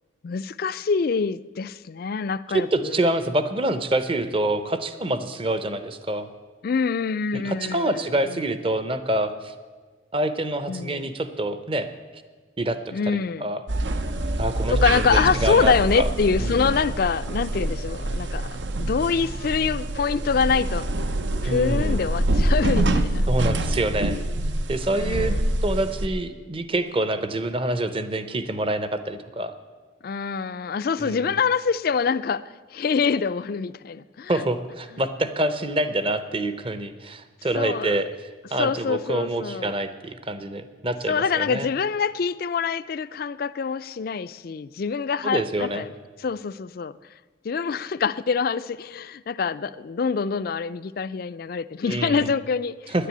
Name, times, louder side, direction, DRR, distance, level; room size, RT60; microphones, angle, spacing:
voice 1, 0.2-3.0 6.6-8.0 8.3-8.4 10.7-11.1 12.9-13.5 14.7-18.5 18.8-20.9 21.4-23.2 24.9-25.4 30.0-34.4 34.9-35.0 37.5-38.0 38.6-39.8 41.1-45.9 46.2-47.0 47.4-53.1, left 5 dB, 50° left, 0.4 m, -25 dB
voice 2, 2.5-6.3 7.4-9.5 10.1-11.9 12.6-13.6 14.4-16.1 16.4-16.7 21.4-22.1 23.3-24.2 24.7-25.4 25.6-29.5 31.0-31.4 34.3-38.1 38.5-41.7 45.2-45.9 51.9-52.3 52.9-53.1, right 1 dB, 30° right, 0.7 m, -26 dB
sound 1, 13.7-26.1, right 1 dB, 70° right, 0.7 m, -25 dB
10.5 x 10.0 x 9.1 m
head